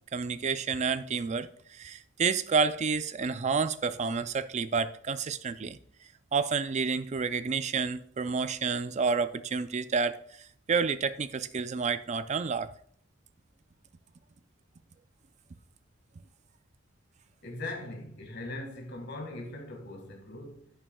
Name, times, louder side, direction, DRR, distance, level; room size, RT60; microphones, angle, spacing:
voice 1, 0.1-5.8 6.3-10.2 10.7-12.7, right 5 dB, 35° right, 0.4 m, -29 dB
voice 2, 17.4-20.7, left 2 dB, 60° left, 1.9 m, -40 dB
11.0 x 9.1 x 2.3 m
head